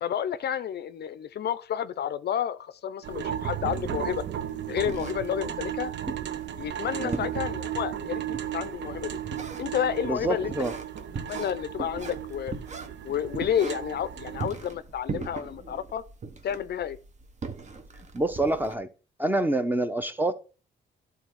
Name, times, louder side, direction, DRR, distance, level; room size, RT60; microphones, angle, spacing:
voice 1, 0.0-4.2 4.7-5.9 6.6-9.2 9.6-10.5 11.3-12.5 13.0-16.0 16.4-17.0, left 9 dB, 55° left, 0.5 m, -30 dB
sound 1, 3.0-14.5, right 10 dB, 65° right, 0.7 m, -35 dB
sound 2, 3.7-18.7, right 4 dB, 35° right, 1.1 m, -41 dB
voice 2, 10.0-10.7 18.1-18.9 19.2-20.3, right 1 dB, 10° right, 0.9 m, -26 dB
11.5 x 3.9 x 4.7 m
cardioid pair, 90°, 20 cm